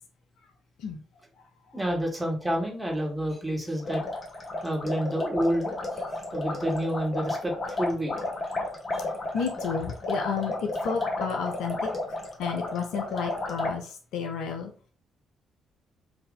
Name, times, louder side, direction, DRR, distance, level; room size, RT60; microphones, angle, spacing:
voice 1, 1.7-4.0 4.6-6.0 6.3-8.2 8.9-9.0 9.4-9.5, equal, 10° right, 1.5 m, -29 dB
sound 1, 3.8-13.7, left 2 dB, 35° left, 1.1 m, -32 dB
voice 2, 9.3-11.9 12.4-14.7, left 6 dB, 60° left, 0.5 m, -31 dB
3.9 x 2.6 x 3.7 m
figure-of-eight pair, 45°, 0 cm